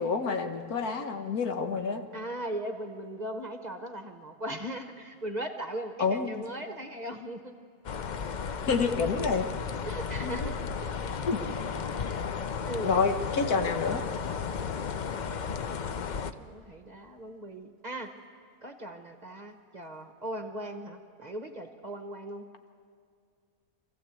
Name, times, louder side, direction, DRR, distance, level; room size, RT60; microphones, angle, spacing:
voice 1, 0.0-2.0 6.0-6.4 8.7-9.5 10.4-10.5 11.3-11.4 12.0-12.2 12.8-14.0, left 5 dB, 80° left, 7 dB, 1.6 m, -28 dB
voice 2, 2.1-7.5 9.8-10.5 10.8-10.9 12.6-13.0 15.1-15.7 16.1-18.1 18.6-22.5, right 1 dB, 35° right, 6 dB, 1.0 m, -38 dB
sound 1, 7.8-16.3, left 6 dB, 60° left, 0.4 m, -34 dB
23.0 x 15.0 x 8.3 m, 2.2 s
omnidirectional pair, 1.6 m